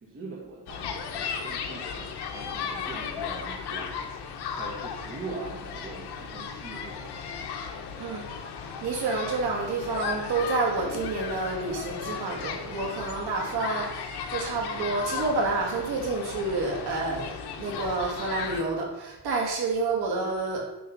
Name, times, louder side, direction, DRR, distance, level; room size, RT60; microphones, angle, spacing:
voice 1, 0.0-4.0 4.5-7.2, right 3 dB, 30° right, -3 dB, 1.6 m, -42 dB
sound 1, 0.7-18.6, left 6 dB, 65° left, 1.2 m, -35 dB
voice 2, 8.8-20.6, right 3 dB, 65° right, -3 dB, 2.8 m, -29 dB
10.5 x 3.6 x 5.5 m, 0.98 s
cardioid pair, 125°, 42 cm